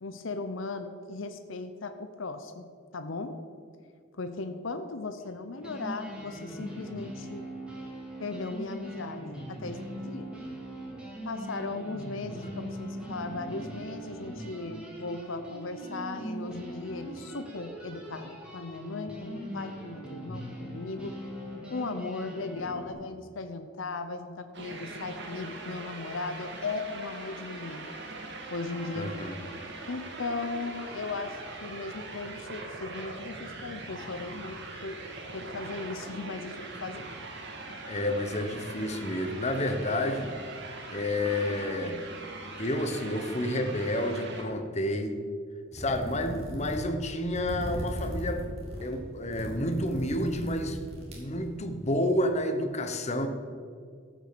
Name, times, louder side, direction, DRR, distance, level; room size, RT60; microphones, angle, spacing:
voice 1, 0.0-3.4 4.1-7.5 8.2-10.3 11.2-21.2 21.7-27.9 28.5-29.2 29.9-35.0 35.3-37.1 37.7-37.8, left 3 dB, 65° left, 8 dB, 0.7 m, -37 dB
sound 1, 5.2-5.3 5.6-22.9, equal, 5° right, 2.6 m, -40 dB
sound 2, 24.5-44.4, right 2 dB, 55° right, 2.0 m, -41 dB
voice 2, 28.9-29.4 37.9-40.3 40.9-42.0 42.6-45.2 45.7-48.4 48.8-50.8 51.2-53.3, left 1 dB, 35° left, 6 dB, 1.0 m, -30 dB
sound 3, 45.7-51.9, equal, 30° right, 3.1 m, -38 dB
14.0 x 6.4 x 6.8 m, 2.1 s
head